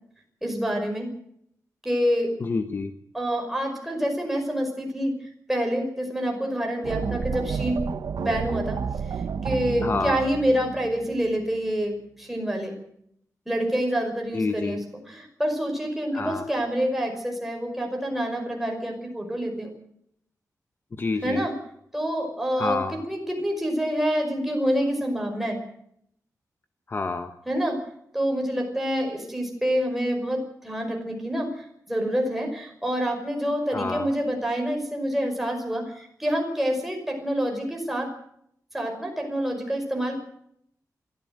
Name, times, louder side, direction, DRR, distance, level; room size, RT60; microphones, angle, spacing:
voice 1, 0.4-1.1 1.8-2.3 3.1-5.1 5.5-7.8 8.2-8.8 9.4-12.8 13.5-14.8 15.1-19.7 21.2-21.5 21.9-22.8 23.1-25.6 27.5-27.8 28.1-38.1 38.7-40.2, equal, 5° right, 2 dB, 5.5 m, -27 dB
voice 2, 2.4-2.9 9.8-10.2 14.3-14.8 16.1-16.5 21.0-21.5 22.6-23.0 26.9-27.3 33.7-34.1, left 3 dB, 35° left, 8 dB, 1.1 m, -28 dB
sound 1, 6.8-11.8, right 6 dB, 85° right, 1.0 m, -31 dB
23.0 x 15.0 x 7.8 m, 0.71 s
wide cardioid pair, 175°, 6 cm